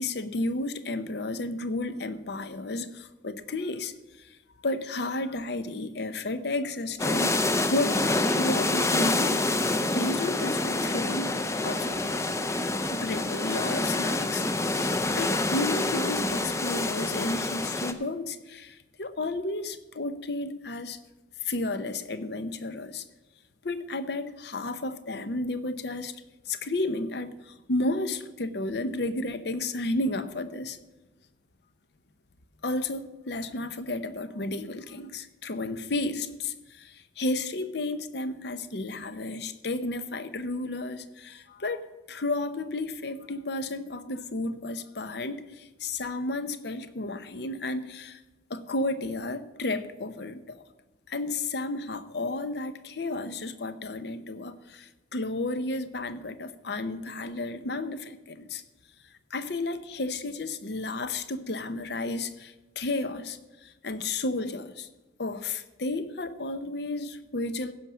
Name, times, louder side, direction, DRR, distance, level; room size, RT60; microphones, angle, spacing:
voice 1, 0.0-3.9 4.2-4.4 4.6-8.1 8.4-9.5 9.9-11.3 11.6-12.2 12.9-21.0 21.4-23.0 23.6-26.1 26.5-30.8 32.6-48.2 48.5-50.6 51.1-58.6 59.3-64.9 65.2-67.7, left 2 dB, 60° left, 12 dB, 0.7 m, -32 dB
sound 1, 7.0-17.9, left 2 dB, 15° left, 0.5 m, -27 dB
15.5 x 5.7 x 6.2 m, 1.1 s
head